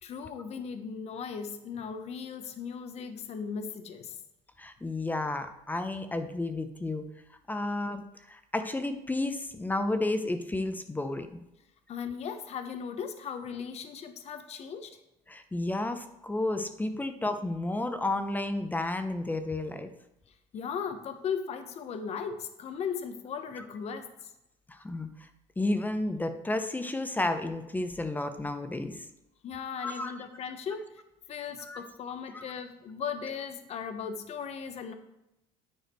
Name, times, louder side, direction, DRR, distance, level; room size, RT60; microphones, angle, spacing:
voice 1, 0.0-4.2 11.9-15.0 20.5-24.3 29.4-31.0 31.3-34.9, left 6 dB, 50° left, 8 dB, 1.0 m, -37 dB
voice 2, 4.6-7.0 7.5-11.3 15.3-19.9 24.7-25.1 25.6-29.0 29.8-30.1 31.6-31.8 32.3-32.4, left 2 dB, 10° left, 9 dB, 0.7 m, -32 dB
9.4 x 4.9 x 4.5 m, 0.88 s
supercardioid pair, 100°, 14 cm